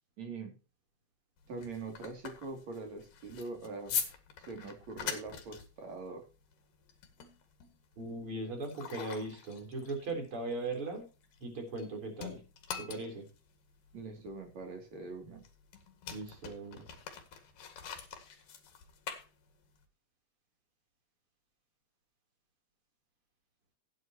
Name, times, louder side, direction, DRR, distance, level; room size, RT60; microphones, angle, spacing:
voice 1, 0.2-0.5 1.5-4.0 4.5-6.2 13.9-15.4, right 3 dB, 55° right, 3 dB, 3.9 m, -43 dB
sound 1, 1.4-11.9 12.2-19.9, left 8 dB, 85° left, 3.6 m, -44 dB
voice 2, 8.0-11.0 11.4-12.4 12.8-13.2 16.1-16.8, right 2 dB, 40° right, 3 dB, 4.4 m, -38 dB
16.5 x 9.6 x 2.9 m, 0.32 s
omnidirectional pair, 3.7 m